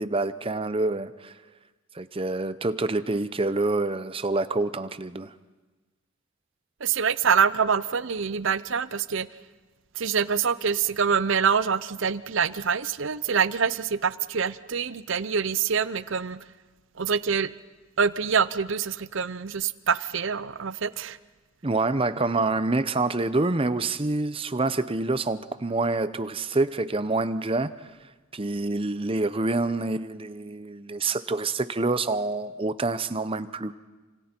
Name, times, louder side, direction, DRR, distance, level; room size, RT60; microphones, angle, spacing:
voice 1, 0.0-1.3 1.9-5.3 21.6-27.9 28.3-33.7, right 2 dB, 25° right, 0.7 m, -27 dB
voice 2, 6.8-9.3 9.9-16.4 17.0-17.5 18.0-21.2, right 6 dB, 60° right, 0.7 m, -25 dB
29.0 x 26.5 x 4.5 m
head